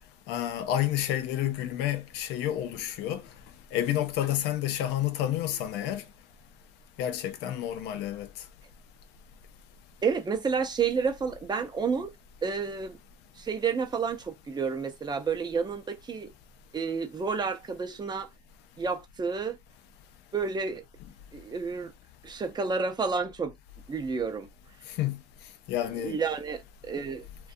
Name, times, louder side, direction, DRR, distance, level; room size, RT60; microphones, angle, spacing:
voice 1, 0.3-3.2 3.7-6.0 7.0-8.3 25.0-25.2 25.7-26.2, left 12 dB, 90° left, 0.5 m, -29 dB
voice 2, 10.0-12.1 12.4-13.0 13.4-16.3 16.7-18.3 18.8-19.6 20.3-20.8 21.3-21.9 22.2-23.5 23.9-24.5 25.9-27.3, right 5 dB, 25° right, 0.5 m, -30 dB
2.4 x 2.2 x 2.6 m
cardioid pair, 110°, 17 cm